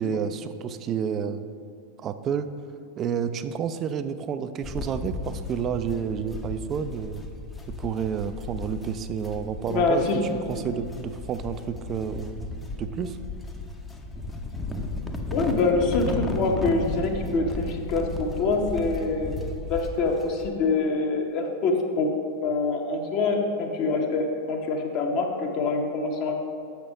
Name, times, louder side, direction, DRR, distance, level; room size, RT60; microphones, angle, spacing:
voice 1, 0.0-1.4 2.0-2.5 3.0-7.2 7.8-10.0 10.3-12.5 12.8-13.2, right 7 dB, 30° right, 11 dB, 0.4 m, -30 dB
sound 1, 4.6-20.5, left 2 dB, 10° left, 0.6 m, -35 dB
voice 2, 9.7-10.2 10.6-10.7 15.3-19.3 19.7-22.1 22.4-26.3, left 3 dB, 40° left, 2 dB, 0.9 m, -25 dB
6.8 x 5.8 x 5.2 m, 2.4 s
figure-of-eight pair, 90°, 0 cm